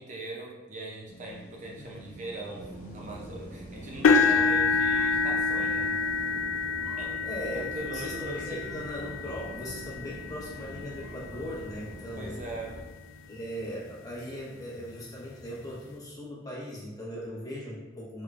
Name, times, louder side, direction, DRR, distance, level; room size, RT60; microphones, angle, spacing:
voice 1, 0.0-5.9 7.0-7.2 7.5-8.7 12.2-12.7, right 2 dB, 40° right, -2 dB, 0.5 m, -40 dB
sound 1, 1.1-6.4, right 1 dB, 45° left, 1.0 m, -50 dB
sound 2, 2.6-12.8, right 1 dB, 55° right, 0.9 m, -44 dB
sound 3, 4.0-12.1 12.7-12.9 13.4-13.5 14.9-15.0, left 4 dB, 75° left, 0.3 m, -28 dB
voice 2, 7.2-12.4 13.3-18.2, equal, 20° left, -6 dB, 1.1 m, -39 dB
4.7 x 3.5 x 2.4 m, 1.2 s
head